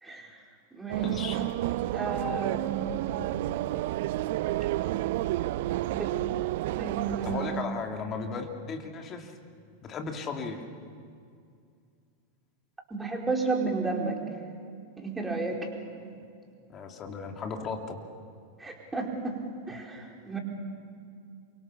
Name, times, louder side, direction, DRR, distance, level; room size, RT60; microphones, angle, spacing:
voice 1, 0.0-0.4 0.7-1.2 1.9-3.0 5.9-6.2 6.8-7.5 12.9-14.2 15.0-15.6 18.6-19.4 19.7-20.4, right 4 dB, 10° right, 0 dB, 4.6 m, -32 dB
voice 2, 0.9-1.5 7.2-9.3 9.8-10.6 16.2-16.3 16.7-18.0, left 5 dB, 30° left, 4 dB, 2.8 m, -36 dB
sound 1, 0.9-7.6, right 15 dB, 50° right, 0.6 m, -30 dB
28.5 x 24.5 x 7.1 m, 2.3 s
figure-of-eight pair, 90°, 0 cm